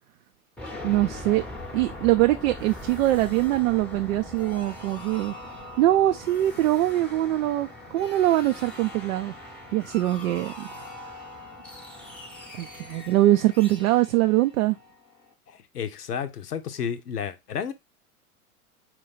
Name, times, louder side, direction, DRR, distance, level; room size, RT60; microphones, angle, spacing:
sound 1, 0.6-15.2, left 1 dB, 5° left, 0.8 m, -41 dB
voice 1, 0.8-1.4 1.7-5.3 5.8-9.3 9.7-11.2 12.6-14.8, right 15 dB, 60° right, 0.5 m, -23 dB
voice 2, 15.5-17.7, left 7 dB, 90° left, 0.7 m, -32 dB
4.5 x 2.3 x 3.8 m
hypercardioid pair, 95°, 46 cm